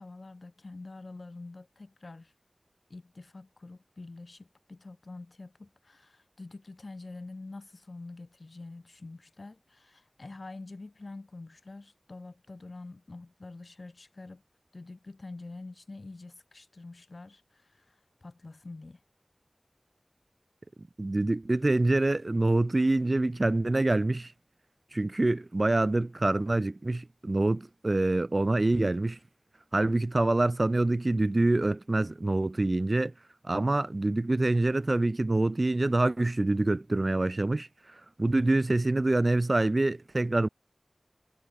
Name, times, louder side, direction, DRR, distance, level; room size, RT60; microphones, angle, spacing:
voice 1, 0.0-2.3 2.9-14.4 14.7-19.0, left 3 dB, 75° left, 7.6 m, -46 dB
voice 2, 21.0-24.3 24.9-29.2 29.7-33.1 33.4-37.7 38.2-40.5, right 2 dB, 55° right, 0.9 m, -26 dB
wide cardioid pair, 55°, 0 cm